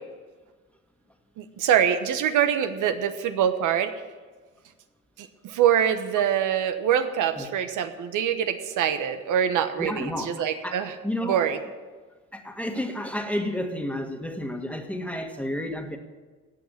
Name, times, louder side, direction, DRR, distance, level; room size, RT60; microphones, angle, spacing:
voice 1, 1.4-3.9 5.2-10.9 11.2-11.6, right 9 dB, 85° right, 9 dB, 1.2 m, -24 dB
voice 2, 9.8-11.4 12.3-16.0, left 1 dB, 5° left, 4 dB, 1.7 m, -31 dB
16.5 x 5.9 x 9.0 m, 1.4 s
cardioid pair, 90°, 30 cm